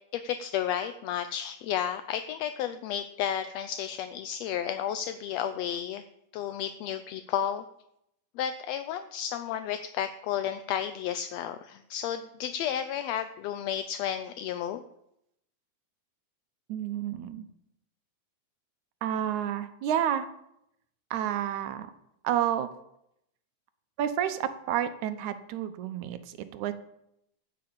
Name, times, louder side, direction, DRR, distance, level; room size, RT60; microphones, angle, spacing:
voice 1, 0.1-6.0 6.3-7.6 8.4-14.8, left 9 dB, 75° left, 10 dB, 1.6 m, -32 dB
voice 2, 16.7-17.5 19.0-20.3 21.1-21.9 22.2-22.7 24.0-26.7, right 10 dB, 75° right, 11 dB, 2.3 m, -30 dB
14.5 x 6.3 x 8.7 m, 0.79 s
omnidirectional pair, 3.5 m